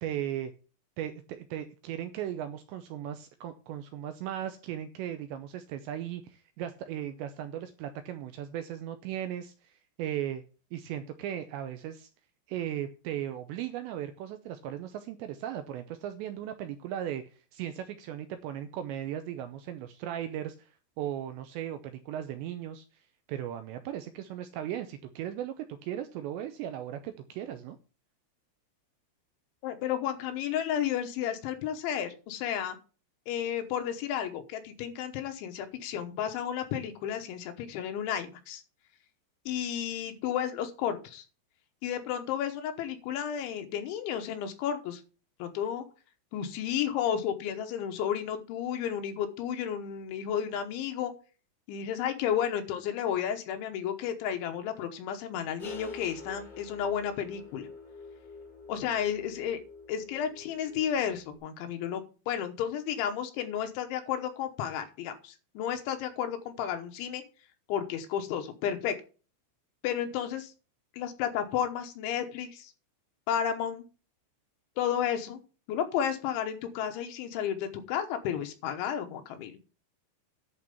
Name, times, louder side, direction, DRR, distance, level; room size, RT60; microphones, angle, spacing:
voice 1, 0.0-0.5 1.0-10.4 10.7-12.1 12.5-17.2 17.5-22.9 23.3-27.8, right 11 dB, 80° right, 8 dB, 2.6 m, -37 dB
voice 2, 29.6-32.8 33.3-38.6 39.5-41.2 41.8-45.0 45.4-45.8 46.3-51.1 51.7-57.7 58.7-59.6 59.9-67.2 67.7-68.9 69.8-70.5 70.9-72.7 73.3-73.9 74.8-75.4 75.7-79.6, left 9 dB, 75° left, 6 dB, 3.2 m, -32 dB
sound 1, 55.6-61.4, left 4 dB, 15° left, 2.5 m, -46 dB
11.0 x 4.6 x 6.8 m, 0.35 s
omnidirectional pair, 5.8 m